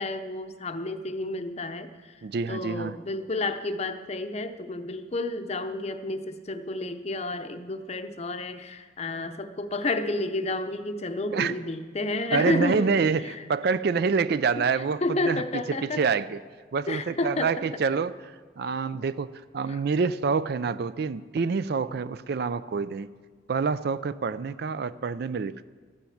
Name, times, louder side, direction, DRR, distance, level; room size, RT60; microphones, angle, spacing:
voice 1, 0.0-2.1 2.5-12.9 13.2-13.4 14.6-16.1 16.9-17.7 19.7-19.8, left 2 dB, 35° left, 9 dB, 0.7 m, -31 dB
voice 2, 2.2-2.9 11.3-11.6 12.3-15.4 15.8-16.4 16.7-18.2 18.6-23.1 23.5-25.6, right 5 dB, 55° right, 15 dB, 0.4 m, -27 dB
13.0 x 9.2 x 7.1 m, 1.5 s
head